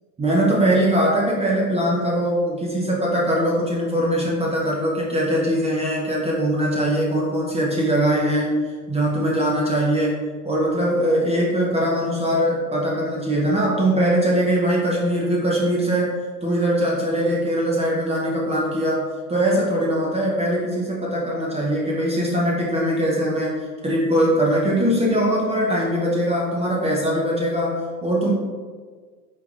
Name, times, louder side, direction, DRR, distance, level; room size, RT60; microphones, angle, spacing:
voice 1, 0.2-16.1 16.4-28.3, right 1 dB, 15° right, -4 dB, 0.7 m, -21 dB
4.6 x 3.7 x 2.4 m, 1.5 s
hypercardioid pair, 105°, 48 cm